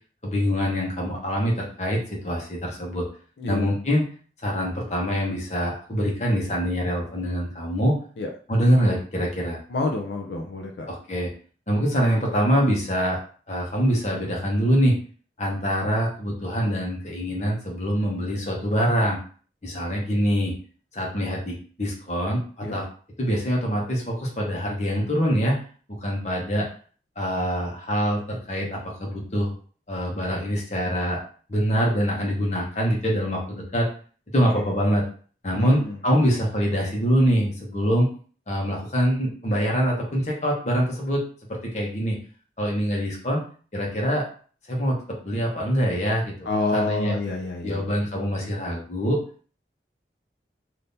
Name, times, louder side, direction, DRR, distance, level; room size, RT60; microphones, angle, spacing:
voice 1, 0.2-3.0 3.5-4.0 4.4-8.0 8.5-9.6 10.9-11.3 11.7-13.2 13.5-15.0 15.4-19.2 19.6-20.5 20.9-22.8 23.2-25.6 25.9-26.7 27.2-29.5 29.9-31.2 31.5-33.9 34.3-35.0 35.4-38.1 38.5-41.2 41.5-42.2 42.6-43.4 43.7-44.2 44.7-46.3 46.7-47.1 47.6-49.2, equal, 40° left, -2 dB, 1.0 m, -24 dB
voice 2, 3.4-3.8 8.2-8.3 9.7-10.9 22.6-22.8 34.6-34.7 35.5-36.0 46.5-47.8, left 3 dB, 80° left, 1 dB, 0.5 m, -28 dB
3.5 x 2.7 x 2.7 m, 0.42 s
head